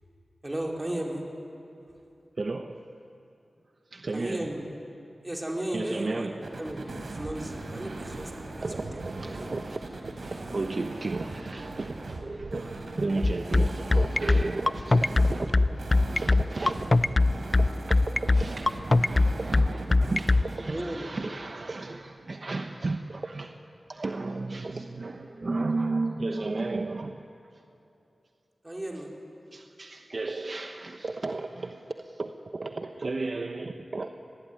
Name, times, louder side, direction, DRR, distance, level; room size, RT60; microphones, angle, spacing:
voice 1, 0.4-1.2 4.1-4.7 5.2-9.5 20.7-21.2 28.6-29.2, right 1 dB, 20° right, 4.6 m, -35 dB
voice 2, 2.4-2.9 3.9-4.5 5.7-6.5 8.6-15.7 16.1-16.9 17.6-27.2 29.5-34.1, right 3 dB, 55° right, 1.1 m, -34 dB
sound 1, 6.4-20.6, right 2 dB, 70° right, 3.8 m, -39 dB
sound 2, 13.2-20.4, left 2 dB, 35° left, 0.5 m, -20 dB
26.5 x 20.5 x 9.8 m
wide cardioid pair, 65°, 0 cm